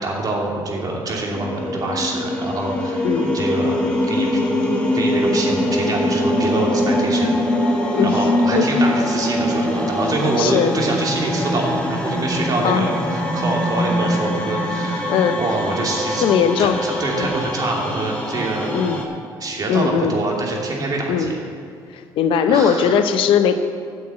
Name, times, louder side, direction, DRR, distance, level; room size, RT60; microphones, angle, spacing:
voice 1, 0.0-3.8 4.1-4.5 4.9-7.7 8.0-16.2 16.6-18.7 19.4-21.4 22.5-23.0, right 2 dB, 45° right, -2 dB, 2.8 m, -25 dB
sound 1, 1.3-19.0, left 1 dB, 10° left, 1.8 m, -22 dB
voice 2, 3.0-3.4 7.9-8.7 10.3-10.8 12.6-12.9 15.1-15.4 16.2-16.8 17.2-17.3 18.7-19.0 19.7-20.2 21.1-21.3 21.9-23.6, left 7 dB, 75° left, 9 dB, 0.7 m, -19 dB
9.9 x 6.4 x 8.6 m, 2.3 s
supercardioid pair, 80°, 9 cm